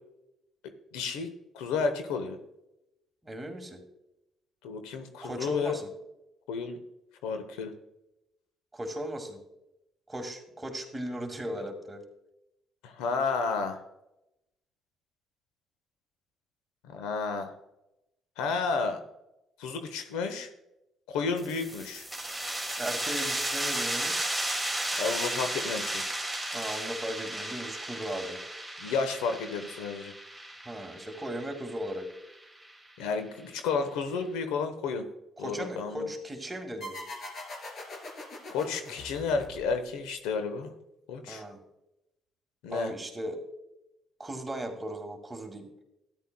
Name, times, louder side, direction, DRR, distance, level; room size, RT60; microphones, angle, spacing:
voice 1, 0.9-1.3 1.5-2.4 4.6-5.8 6.5-6.8 7.2-7.7 12.8-13.8 16.8-17.5 18.4-19.0 19.6-20.5 21.1-22.1 25.0-26.0 28.8-30.1 33.0-35.1 35.4-36.1 38.5-40.7 41.1-41.4 42.6-42.9, left 5 dB, 85° left, 7 dB, 0.9 m, -31 dB
voice 2, 3.2-3.8 5.2-5.8 8.7-9.4 10.1-12.0 22.8-24.3 26.5-28.4 30.7-32.1 35.4-37.0 41.3-41.6 42.7-43.4 44.2-45.7, equal, 20° right, 2 dB, 2.1 m, -37 dB
sound 1, 21.4-32.7, right 1 dB, ahead, 2.2 m, -34 dB
sound 2, 36.8-40.1, left 1 dB, 55° left, 2.7 m, -42 dB
13.0 x 10.0 x 2.2 m, 0.88 s
supercardioid pair, 60°, 0 cm